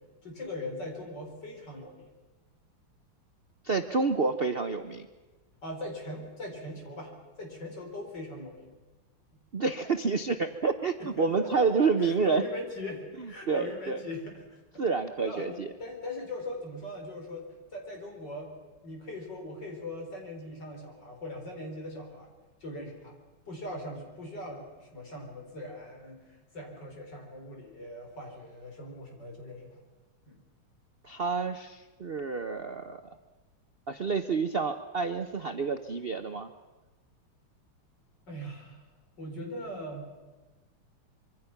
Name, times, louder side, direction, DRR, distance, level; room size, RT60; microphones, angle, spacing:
voice 1, 0.2-2.1 5.6-7.1 7.4-8.7 11.0-14.6 15.2-17.4 17.7-18.5 18.8-22.3 22.6-23.2 23.5-29.7 30.3-30.4 38.3-38.8 39.2-40.1, left 1 dB, 50° left, 2 dB, 4.8 m, -40 dB
voice 2, 3.6-5.1 9.5-12.4 13.2-14.0 14.8-15.7 31.0-33.0 33.9-36.5, right 4 dB, 75° right, 8 dB, 0.5 m, -29 dB
25.5 x 23.5 x 5.9 m, 1.2 s
omnidirectional pair, 2.3 m